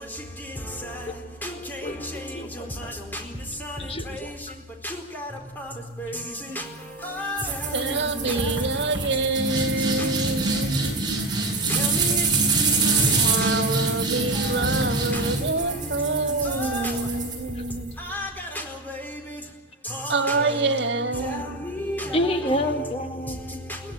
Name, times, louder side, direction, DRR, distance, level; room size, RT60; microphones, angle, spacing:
voice 1, 1.4-1.8 3.1-3.2 3.6-3.8 4.8-5.3 6.0-6.1 7.0-8.0 8.2-8.3 11.7-12.2 12.8-13.2 16.1-16.2 16.5-16.9 18.0-18.5 18.9-19.0 19.9-20.6 21.3-22.6, left 1 dB, 10° left, 3 dB, 4.4 m, -32 dB
voice 2, 2.3-2.9 3.8-4.3 22.1-23.6, equal, 35° left, 6 dB, 1.4 m, -28 dB
sound 1, 7.4-17.9, right 3 dB, 25° right, 7.5 m, -25 dB
voice 3, 7.7-11.0 12.1-12.2 13.2-17.9 20.1-21.6, right 3 dB, 85° right, 7 dB, 1.9 m, -26 dB
23.0 x 17.5 x 9.2 m, 1.2 s
head